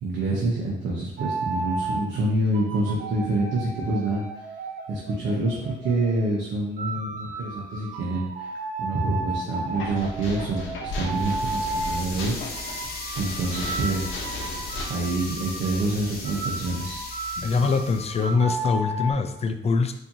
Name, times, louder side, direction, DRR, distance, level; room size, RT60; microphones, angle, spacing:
voice 1, 0.0-4.5 4.9-12.7 13.2-14.2 14.9-17.1, right 2 dB, 75° right, -3 dB, 0.8 m, -27 dB
sound 1, 1.2-2.0 2.5-6.3 6.8-12.1 12.5-15.9 16.2-19.1, right 2 dB, 40° right, 0.7 m, -34 dB
sound 2, 9.7-14.8, left 2 dB, 80° left, 0.8 m, -35 dB
sound 3, 11.1-18.3, left 3 dB, 50° left, 0.9 m, -37 dB
voice 2, 17.4-19.9, left 4 dB, 30° left, 8 dB, 0.4 m, -23 dB
4.2 x 2.8 x 2.7 m, 0.80 s
cardioid pair, 90°, 20 cm